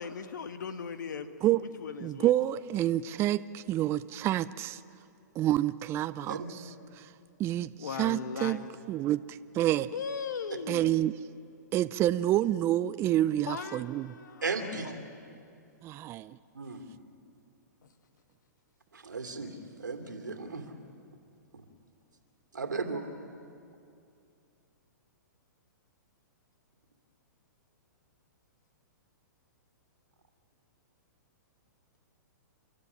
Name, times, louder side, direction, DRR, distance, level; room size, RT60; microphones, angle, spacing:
voice 1, 0.0-2.3 7.8-8.7 9.9-11.0 13.3-14.4, left 6 dB, 75° left, 9 dB, 1.6 m, -38 dB
voice 2, 2.0-4.8 5.4-6.6 7.0-7.1 7.4-9.9 10.7-11.1 11.7-14.1 15.8-16.3, right 13 dB, 25° right, 14 dB, 0.5 m, -28 dB
voice 3, 14.4-14.9 16.5-16.9 18.9-20.6 21.5-21.6 22.5-23.1, right 4 dB, 90° right, 4 dB, 2.9 m, -35 dB
30.0 x 13.0 x 9.9 m, 2.5 s
hypercardioid pair, 120°, 10 cm